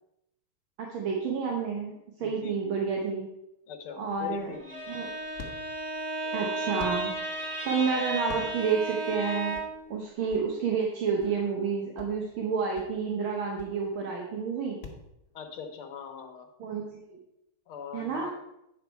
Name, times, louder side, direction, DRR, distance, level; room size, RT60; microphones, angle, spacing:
voice 1, 0.8-3.3 4.0-4.5 4.9-5.1 6.2-9.6 9.9-14.8 16.6-16.8 17.1-17.2 17.9-18.3, right 5 dB, 75° right, 0 dB, 1.9 m, -30 dB
voice 2, 2.2-2.6 3.7-4.8 15.3-16.5 17.7-18.3, left 6 dB, 85° left, 4 dB, 1.9 m, -41 dB
sound 1, 4.2-15.1, left 4 dB, 35° left, 1.3 m, -49 dB
Bowed string instrument, 4.5-9.9, right 2 dB, 25° right, 0.6 m, -34 dB
9.4 x 6.2 x 4.6 m, 0.84 s
omnidirectional pair, 2.3 m